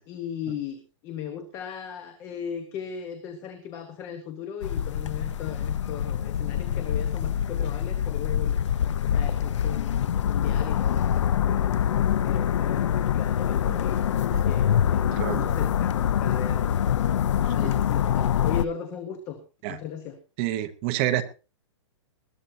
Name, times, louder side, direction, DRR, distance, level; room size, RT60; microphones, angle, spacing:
voice 1, 0.1-8.8 9.1-11.8 12.2-16.7 17.5-19.4 19.7-20.2, left 8 dB, 20° left, 8 dB, 1.1 m, -37 dB
sound 1, 4.6-18.7, left 9 dB, 75° left, 0.6 m, -25 dB
voice 2, 15.1-15.5 17.6-17.7 19.6-19.8 20.4-21.2, right 13 dB, 25° right, 10 dB, 0.9 m, -28 dB
20.5 x 13.0 x 2.7 m, 0.34 s
hypercardioid pair, 175°, 15 cm